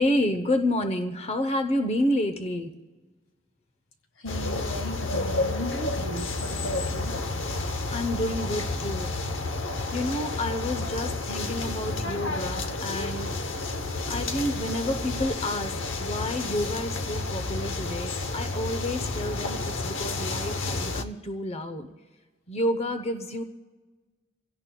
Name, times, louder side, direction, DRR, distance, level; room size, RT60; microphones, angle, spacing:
voice 1, 0.0-2.7 7.9-9.1 9.9-13.3 14.1-15.7 16.0-21.9 22.5-23.4, left 1 dB, 30° left, 8 dB, 0.8 m, -29 dB
voice 2, 4.2-7.2, equal, 85° left, 6 dB, 1.7 m, -37 dB
sound 1, 4.3-21.0, left 2 dB, 70° left, 0.9 m, -30 dB
27.5 x 17.0 x 2.3 m, 1.3 s
head